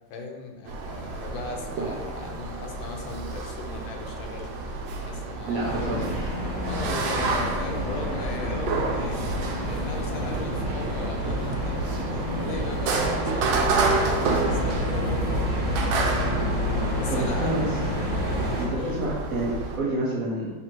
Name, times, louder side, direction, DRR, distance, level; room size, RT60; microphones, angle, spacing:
voice 1, 0.1-5.9 6.6-9.2 9.6-14.0 14.4-16.3 16.8-17.5 18.7-19.0, left 4 dB, 85° left, 2 dB, 1.4 m, -38 dB
sound 1, 0.7-19.8, right 3 dB, 85° right, 1.4 m, -30 dB
voice 2, 5.5-6.4 17.1-17.7 18.6-20.5, right 1 dB, 70° right, -5 dB, 0.8 m, -29 dB
sound 2, 5.6-18.7, equal, 45° right, 1.6 m, -28 dB
3.7 x 2.4 x 4.3 m, 1.3 s
omnidirectional pair, 2.1 m